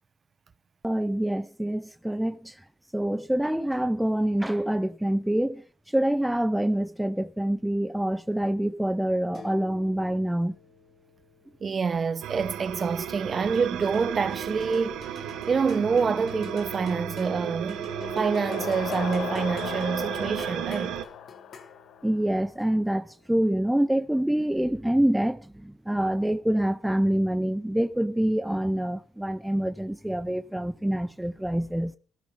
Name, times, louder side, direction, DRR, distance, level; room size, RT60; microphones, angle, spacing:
voice 1, 0.8-2.6 2.9-10.5 22.0-31.9, right 1 dB, 5° right, 0.6 m, -26 dB
sound 1, 9.2-12.4 13.5-24.0, left 4 dB, 55° left, 3.5 m, -46 dB
voice 2, 11.6-15.0 15.5-17.9 18.1-21.0, right 5 dB, 40° right, 1.0 m, -27 dB
sound 2, 12.2-21.0, right 11 dB, 85° right, 1.2 m, -34 dB
sound 3, 17.5-22.3, left 9 dB, 75° left, 1.1 m, -38 dB
13.5 x 13.5 x 5.6 m
cardioid pair, 90°, 0 cm